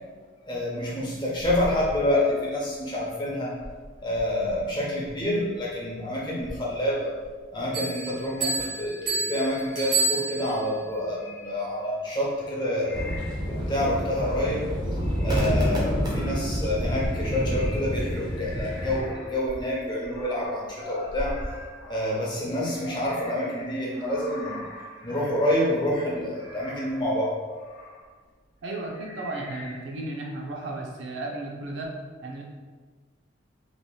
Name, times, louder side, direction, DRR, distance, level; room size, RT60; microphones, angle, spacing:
voice 1, 0.4-3.6 4.0-7.1 7.5-13.1 13.4-14.7 15.2-21.4 21.9-24.6 25.0-27.4, left 1 dB, 25° left, -5 dB, 0.6 m, -27 dB
Bell, 7.7-10.8, right 3 dB, 40° right, 1.0 m, -29 dB
sound 1, 11.1-11.6 12.3-19.3 19.6-28.1 28.8-30.1, left 2 dB, 80° left, 0.9 m, -44 dB
sound 2, 12.9-19.0, equal, 20° right, 0.5 m, -28 dB
voice 2, 28.6-32.4, right 2 dB, 80° right, 0 dB, 0.5 m, -34 dB
3.3 x 2.7 x 2.2 m, 1.4 s
head